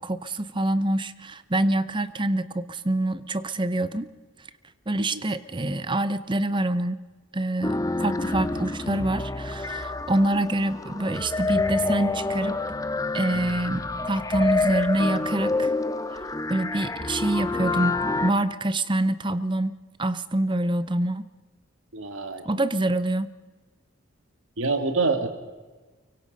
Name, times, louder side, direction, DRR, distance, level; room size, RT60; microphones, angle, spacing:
voice 1, 0.0-4.1 4.9-7.0 7.3-12.6 13.1-15.7 16.1-16.2 16.5-21.2 22.4-23.3, right 1 dB, 20° right, 15 dB, 0.7 m, -26 dB
sound 1, 7.6-18.3, left 3 dB, 15° left, 0.7 m, -28 dB
voice 2, 21.9-22.4 24.6-25.3, right 3 dB, 70° right, 8 dB, 2.1 m, -26 dB
24.5 x 24.0 x 5.3 m, 1.3 s
head